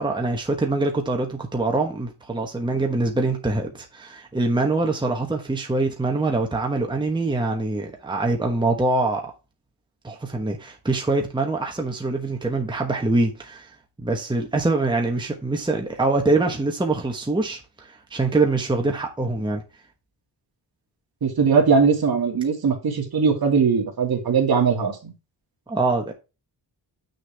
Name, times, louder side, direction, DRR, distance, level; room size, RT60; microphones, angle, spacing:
voice 1, 0.0-9.3 10.0-13.7 14.0-19.6 25.7-26.1, right 2 dB, 10° right, 1.1 m, -24 dB
voice 2, 21.2-25.1, right 5 dB, 55° right, 2.2 m, -20 dB
7.3 x 6.6 x 3.4 m
wide cardioid pair, 140°, 44 cm